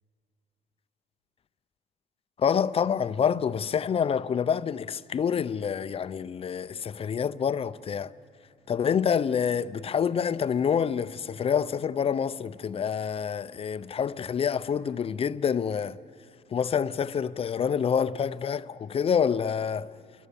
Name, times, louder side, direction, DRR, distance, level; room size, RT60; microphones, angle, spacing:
voice 1, 2.4-8.1 8.7-16.0 16.5-19.9, left 7 dB, 35° left, 0.6 m, -27 dB
28.5 x 23.5 x 7.0 m
cardioid pair, 110°, 17 cm